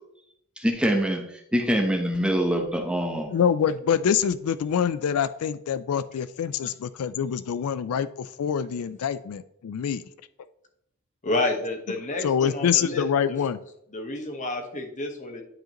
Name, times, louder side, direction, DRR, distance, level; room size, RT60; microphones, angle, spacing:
voice 1, 0.6-3.3, equal, 5° right, 3 dB, 0.8 m, -24 dB
voice 2, 3.3-10.0 12.2-13.6, left 8 dB, 80° left, 14 dB, 0.3 m, -25 dB
voice 3, 11.2-13.4 13.9-15.4, left 2 dB, 35° left, 3 dB, 1.2 m, -30 dB
10.5 x 4.9 x 3.0 m, 0.76 s
head